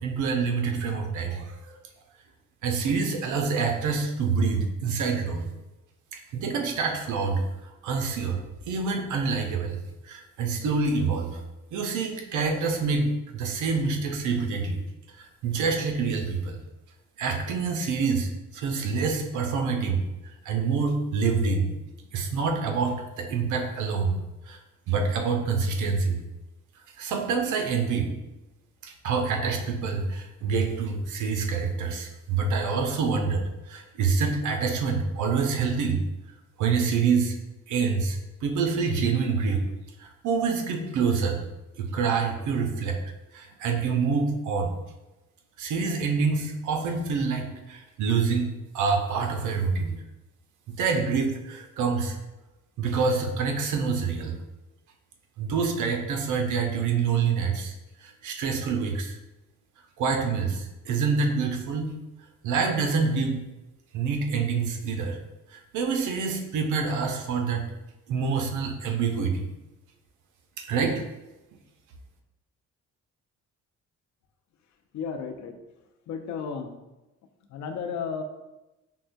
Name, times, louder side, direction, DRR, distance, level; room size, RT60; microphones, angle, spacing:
voice 1, 0.0-1.8 2.6-5.5 6.1-9.8 10.0-11.4 11.7-14.8 15.1-16.6 17.2-21.7 22.1-24.2 24.5-24.6 24.9-26.2 27.0-28.1 28.8-36.0 36.6-37.4 37.7-39.6 40.0-41.4 41.8-43.0 43.3-44.7 45.6-48.5 48.7-49.9 50.7-52.2 52.8-54.4 55.4-57.7 58.0-59.2 60.0-61.9 62.4-63.4 63.9-65.2 65.5-67.7 68.1-69.5 70.6-71.0, right 5 dB, 75° right, 4 dB, 0.6 m, -26 dB
voice 2, 74.9-75.6 76.1-76.8 77.5-78.2, left 6 dB, 65° left, 6 dB, 0.5 m, -33 dB
5.3 x 2.2 x 2.5 m, 1.0 s
cardioid pair, 90°, 30 cm